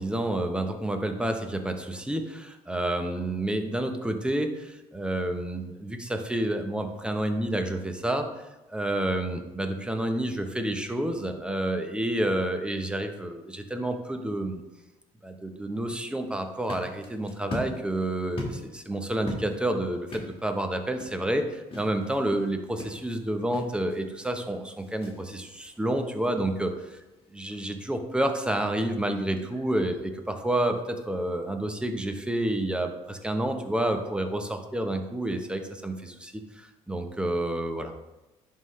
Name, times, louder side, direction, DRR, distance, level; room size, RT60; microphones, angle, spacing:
voice 1, 0.0-8.3 8.7-14.6 15.2-26.7 27.3-37.9, right 1 dB, 5° right, 5 dB, 0.9 m, -29 dB
sound 1, 16.3-29.9, left 1 dB, 35° left, 2.0 m, -43 dB
10.5 x 3.8 x 3.2 m, 1.0 s
supercardioid pair, 80°, 15 cm